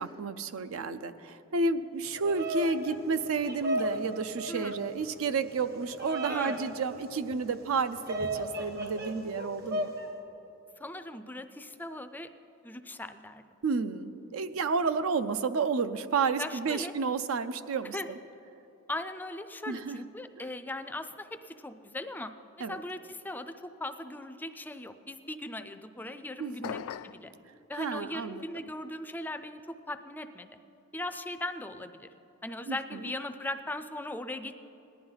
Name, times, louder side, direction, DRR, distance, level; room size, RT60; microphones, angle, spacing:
voice 1, 0.0-9.9 13.6-18.2 19.7-20.1 20.4-20.5 22.6-22.8 26.4-26.8 27.7-28.4 32.7-33.1, right 4 dB, 80° right, 12 dB, 0.5 m, -31 dB
Bird vocalization bird call bird song, 2.0-10.1, right 1 dB, 50° right, 1.1 m, -36 dB
voice 2, 6.3-6.6 10.8-12.3 12.6-13.5 16.4-16.9 17.9-18.1 18.9-22.3 22.7-27.3 27.7-30.5 30.9-32.1 32.4-34.6, left 1 dB, 10° left, 10 dB, 0.3 m, -39 dB
sound 1, 26.6-27.3, left 9 dB, 85° left, 0.3 m, -38 dB
17.5 x 11.0 x 3.9 m, 3.0 s
head